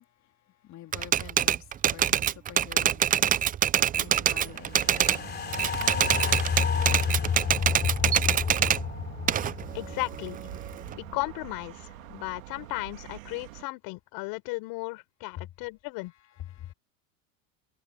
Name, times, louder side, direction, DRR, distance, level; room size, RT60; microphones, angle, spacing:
voice 1, 0.0-8.1 15.3-15.5 16.4-16.7, left 13 dB, 45° left, 3.6 m, -48 dB
Typewriter, 0.9-5.2 5.5-8.8 9.3-10.9, right 10 dB, 20° right, 0.5 m, -25 dB
sound 1, 3.9-13.6, right 17 dB, 90° right, 2.0 m, -45 dB
sound 2, 4.7-11.1 11.4-11.5, left 6 dB, 25° left, 3.0 m, -30 dB
voice 2, 9.7-10.4 10.9-16.1, left 25 dB, 65° left, 5.7 m, -35 dB
supercardioid pair, 110°, 39 cm